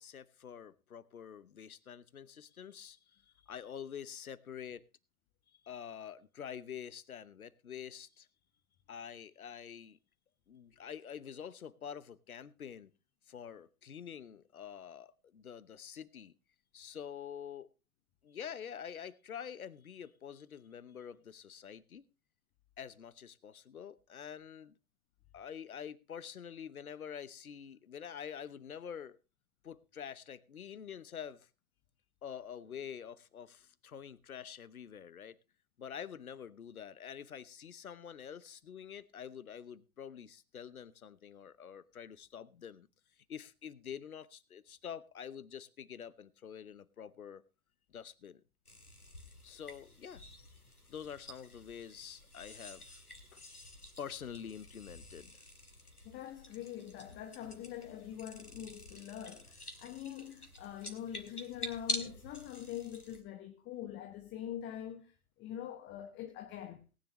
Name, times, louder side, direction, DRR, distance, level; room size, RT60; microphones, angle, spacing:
voice 1, 0.0-4.8 5.5-8.3 8.9-10.0 10.5-12.9 13.3-16.3 16.7-17.7 18.2-22.0 22.8-24.7 25.3-29.2 29.6-31.5 32.2-35.4 35.8-42.9 43.2-47.4 47.9-48.4 49.4-50.2 50.9-53.0 53.3-53.4 54.0-55.4, left 8 dB, 75° left, 1.0 m, -47 dB
sound 1, 48.6-63.2, left 2 dB, 90° left, 2.1 m, -47 dB
voice 2, 56.0-65.1 65.4-66.8, left 11 dB, 25° left, 1.2 m, -44 dB
18.5 x 10.0 x 3.0 m
figure-of-eight pair, 110°, 44 cm